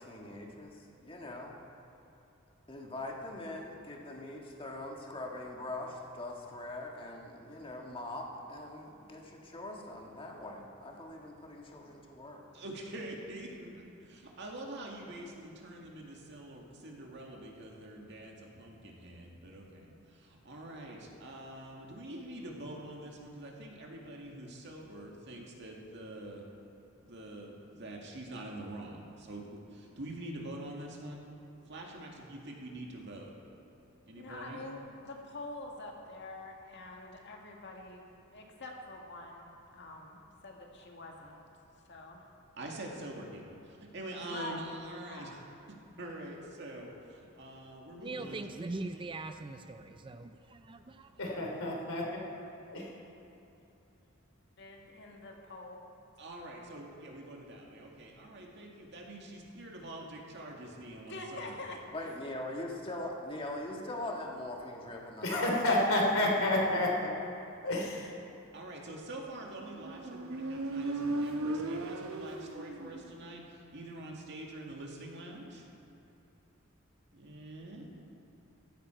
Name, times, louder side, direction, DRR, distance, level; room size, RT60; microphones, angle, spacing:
voice 1, 0.0-1.5 2.7-12.4 61.9-65.8 66.2-66.3, left 1 dB, 25° left, 0 dB, 1.6 m, -42 dB
voice 2, 12.5-26.5 27.0-31.3 31.7-33.3 34.1-34.6 42.5-45.4 46.0-48.4 56.2-61.7 68.5-75.7 77.1-77.9, right 1 dB, 55° right, -1 dB, 2.1 m, -45 dB
voice 3, 34.2-38.0 38.3-41.5 41.9-42.2 44.2-44.6 45.1-45.3 54.6-55.8 61.1-61.8, left 2 dB, 55° left, 1 dB, 1.8 m, -45 dB
voice 4, 48.0-51.2, right 2 dB, 25° right, 8 dB, 0.4 m, -41 dB
voice 5, 51.2-52.2 52.5-53.0 65.2-67.1 67.6-68.1, left 1 dB, 80° left, -1 dB, 3.0 m, -30 dB
Motorcycle, 69.6-73.3, right 2 dB, 75° right, 1.0 m, -36 dB
15.0 x 13.5 x 4.5 m, 2.9 s
head